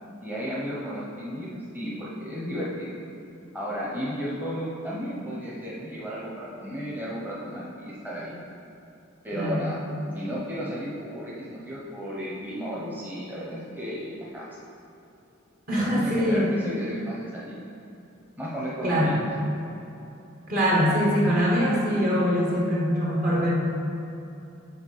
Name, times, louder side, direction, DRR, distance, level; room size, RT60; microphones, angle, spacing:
voice 1, 0.2-2.9 3.5-8.4 9.2-9.8 10.1-14.5 15.8-17.5 18.4-19.1, equal, 10° right, -7 dB, 1.0 m, -34 dB
voice 2, 9.3-9.7 15.7-16.5 18.8-19.1 20.5-23.5, equal, 45° right, -5 dB, 1.6 m, -23 dB
6.4 x 4.3 x 6.6 m, 2.9 s
head